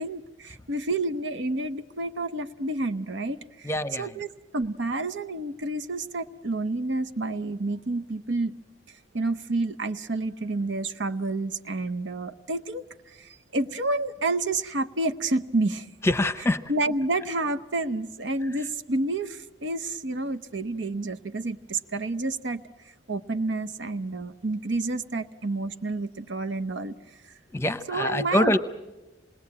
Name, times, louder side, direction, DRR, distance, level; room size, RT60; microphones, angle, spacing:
voice 1, 0.0-3.7 4.0-4.3 4.5-8.6 9.1-15.9 16.7-22.6 23.1-27.0 27.2-27.3 27.9-28.6, right 2 dB, 80° right, 10 dB, 0.9 m, -29 dB
voice 2, 3.6-4.1 16.0-16.6 27.5-28.6, left 1 dB, 15° left, 12 dB, 0.8 m, -24 dB
27.5 x 20.0 x 8.7 m, 1.1 s
head